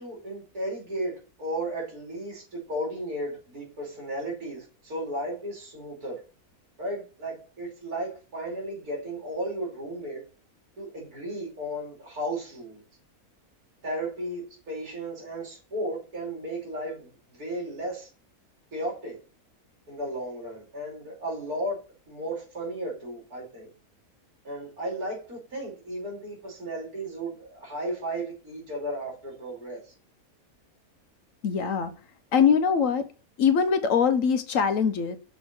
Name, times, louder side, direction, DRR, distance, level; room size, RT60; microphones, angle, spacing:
voice 1, 0.0-6.2 6.8-10.2 10.8-12.8 13.8-17.1 17.4-18.1 18.7-19.2 19.9-21.8 22.1-23.7 24.4-29.8, right 1 dB, 75° right, 3.3 m, -34 dB
voice 2, 31.4-31.9 32.3-33.1 33.4-35.2, left 6 dB, 65° left, 1.0 m, -22 dB
6.0 x 4.0 x 6.1 m
omnidirectional pair, 1.6 m